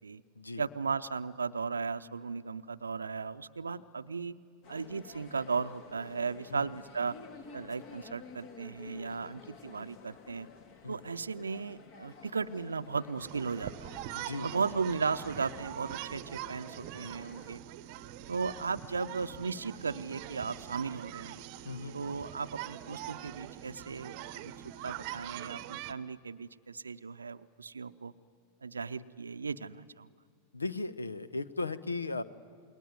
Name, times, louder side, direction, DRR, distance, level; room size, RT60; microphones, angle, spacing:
voice 1, 0.6-4.4 4.7-7.2 7.5-10.5 10.9-13.9 14.4-17.6 18.3-21.4 21.9-24.5 24.8-28.1 28.6-30.1, right 5 dB, 75° right, 10 dB, 0.6 m, -36 dB
sound 1, 4.6-17.6, left 5 dB, 45° left, 2.1 m, -52 dB
sound 2, 13.2-25.9, right 13 dB, 45° right, 0.8 m, -43 dB
voice 2, 14.1-14.6 21.6-21.9 30.5-32.2, left 3 dB, 80° left, 16 dB, 1.0 m, -37 dB
28.5 x 21.5 x 9.6 m, 2.1 s
figure-of-eight pair, 90°, 0 cm